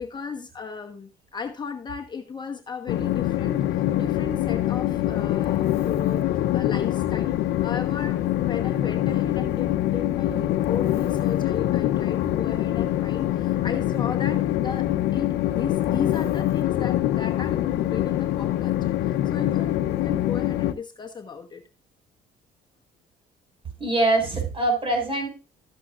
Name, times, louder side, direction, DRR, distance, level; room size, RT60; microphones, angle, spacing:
voice 1, 0.0-7.4 7.6-21.6, left 6 dB, 25° left, 4 dB, 1.2 m, -35 dB
Train, 2.9-20.7, left 13 dB, 80° left, 0.8 m, -24 dB
voice 2, 23.8-25.3, right 2 dB, 30° right, 3 dB, 5.9 m, -23 dB
13.0 x 8.5 x 2.5 m, 0.33 s
cardioid pair, 110°, 17 cm